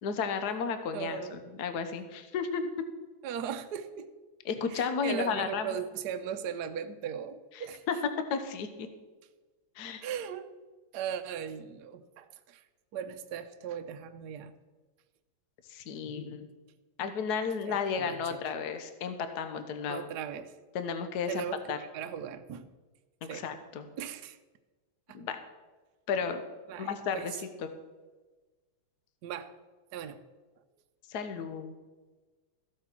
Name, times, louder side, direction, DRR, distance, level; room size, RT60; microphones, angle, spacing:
voice 1, 0.0-2.7 4.5-5.7 7.9-8.0 8.3-8.9 9.8-10.0 15.7-16.5 17.0-20.1 20.7-21.8 23.2-23.9 25.1-25.4 26.1-26.4 26.8-27.3 31.1-31.7, left 6 dB, 55° left, 9 dB, 1.5 m, -33 dB
voice 2, 0.9-1.4 3.2-4.1 4.7-7.8 10.0-10.5 10.9-12.6 12.9-14.5 17.6-18.4 19.9-20.5 21.3-22.7 23.2-23.5 24.0-24.4 25.1-25.2 26.7-27.3 29.2-29.5 29.9-30.2 31.4-31.5, right 8 dB, 65° right, 8 dB, 1.2 m, -38 dB
14.5 x 8.1 x 6.0 m, 1.3 s
omnidirectional pair, 2.2 m